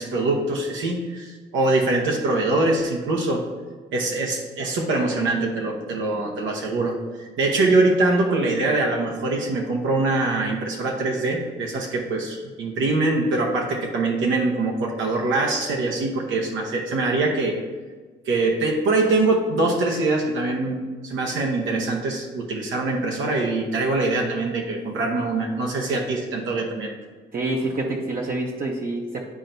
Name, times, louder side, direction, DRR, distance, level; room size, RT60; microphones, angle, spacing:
voice 1, 0.0-3.4 3.9-17.6 18.3-26.9, right 2 dB, 80° right, 0 dB, 1.1 m, -23 dB
voice 2, 27.3-29.3, right 2 dB, 45° right, -1 dB, 0.9 m, -27 dB
11.0 x 4.4 x 2.7 m, 1.4 s
cardioid pair, 90°, 20 cm